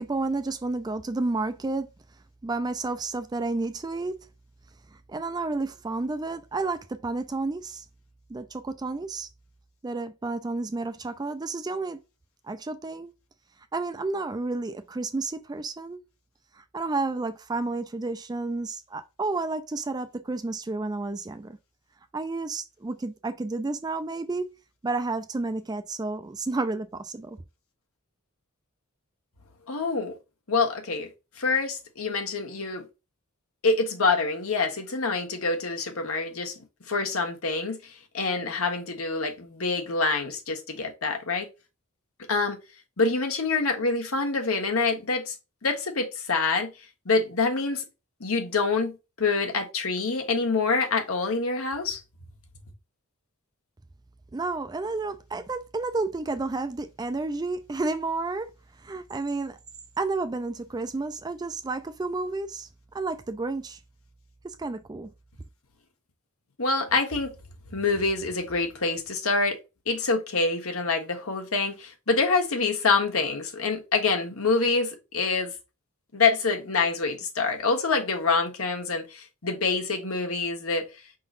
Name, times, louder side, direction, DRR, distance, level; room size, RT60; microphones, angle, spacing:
voice 1, 0.0-1.9 2.4-4.2 5.1-7.8 8.3-9.3 9.8-12.0 12.5-13.1 13.7-16.0 16.7-21.6 22.1-24.5 24.8-27.4 54.3-58.5 58.8-59.6 60.0-62.7 62.9-63.8 64.4-65.1, right 3 dB, 20° right, 0.3 m, -31 dB
voice 2, 29.7-30.1 30.5-31.1 31.4-32.8 33.6-36.5 36.9-41.5 42.3-42.6 43.0-45.4 45.6-46.7 47.0-47.8 48.2-52.0 66.6-67.3 67.7-69.6 69.9-75.5 76.1-80.8, left 4 dB, 70° left, 1.3 m, -26 dB
5.4 x 3.8 x 2.6 m
head